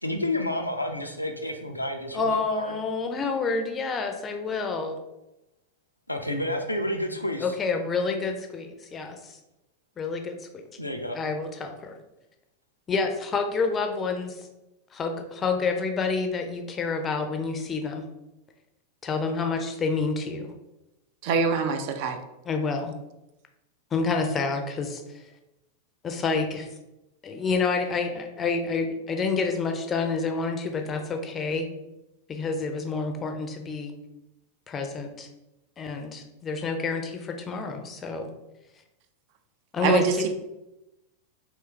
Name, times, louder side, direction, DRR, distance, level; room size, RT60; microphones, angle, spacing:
voice 1, 0.0-2.7 6.1-7.5 10.8-11.2, left 1 dB, 85° left, 4 dB, 0.3 m, -30 dB
voice 2, 2.1-5.0 7.4-9.4 10.0-10.6 11.1-11.9 12.9-14.5 14.9-18.1 19.0-20.5 22.4-22.9 23.9-25.2 26.0-26.7 27.2-31.7 32.3-33.9 34.7-35.3 35.8-38.3 39.7-40.3, left 4 dB, 20° left, 4 dB, 0.4 m, -28 dB
voice 3, 21.2-22.2 39.8-40.3, right 5 dB, 45° right, 6 dB, 0.3 m, -24 dB
3.0 x 2.3 x 3.2 m, 0.94 s
figure-of-eight pair, 90°, 0 cm